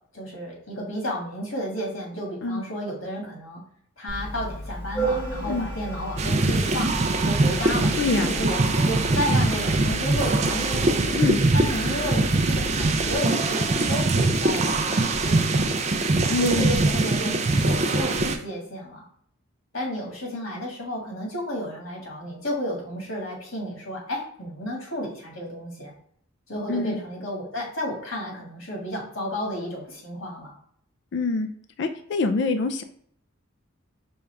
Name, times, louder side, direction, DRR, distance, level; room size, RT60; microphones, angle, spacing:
voice 1, 0.1-3.6 4.0-7.9 8.3-11.0 11.5-15.7 16.4-19.0 19.7-25.9 26.5-30.5, equal, 85° left, -2 dB, 1.7 m, -32 dB
Organ, 4.1-13.1, right 1 dB, 5° right, 1.3 m, -34 dB
sound 1, 6.2-18.4, right 2 dB, 35° right, 0.4 m, -23 dB
voice 2, 8.0-8.3 11.1-11.4 16.3-16.7 26.7-27.0 31.1-31.5 31.8-32.8, left 3 dB, 60° left, 8 dB, 0.4 m, -25 dB
5.2 x 2.3 x 3.3 m, 0.65 s
head